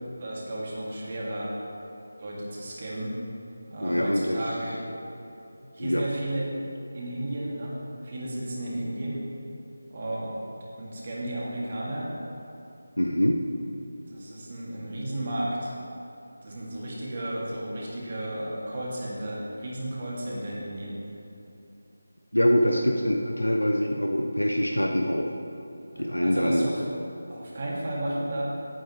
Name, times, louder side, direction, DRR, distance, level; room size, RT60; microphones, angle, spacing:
voice 1, 0.2-1.5 2.2-3.2 3.7-4.9 5.7-6.5 6.9-7.8 8.0-9.3 9.9-12.1 14.1-15.7 16.4-21.0 22.7-22.8 25.9-26.8 27.3-28.4, right 1 dB, 35° right, -5 dB, 2.3 m, -33 dB
voice 2, 3.8-4.4 5.8-6.0 13.0-13.4 22.3-25.3 26.0-26.7, equal, 85° left, 2 dB, 0.9 m, -24 dB
17.5 x 9.2 x 3.2 m, 2.8 s
figure-of-eight pair, 160°, 0 cm